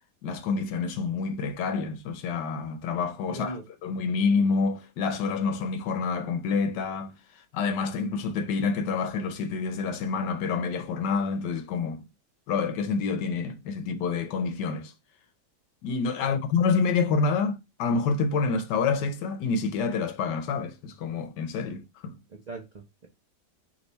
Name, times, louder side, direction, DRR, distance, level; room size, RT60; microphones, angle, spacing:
voice 1, 0.2-3.6 3.8-7.2 7.5-12.0 12.5-14.9 15.8-22.2, left 5 dB, 90° left, 1.4 m, -27 dB
voice 2, 3.3-3.7 16.3-16.4 22.3-23.1, right 2 dB, 70° right, 0.4 m, -39 dB
3.3 x 3.3 x 4.0 m
omnidirectional pair, 1.8 m